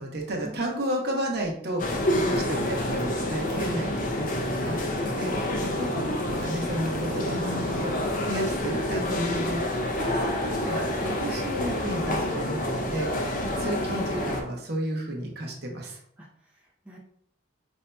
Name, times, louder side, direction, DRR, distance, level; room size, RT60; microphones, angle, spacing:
voice 1, 0.0-16.0, right 1 dB, 55° right, 0 dB, 0.8 m, -32 dB
sound 1, 1.8-14.4, left 1 dB, 45° left, 0.5 m, -28 dB
voice 2, 16.2-17.0, right 1 dB, 5° right, -5 dB, 0.5 m, -46 dB
5.3 x 2.7 x 2.2 m, 0.68 s
head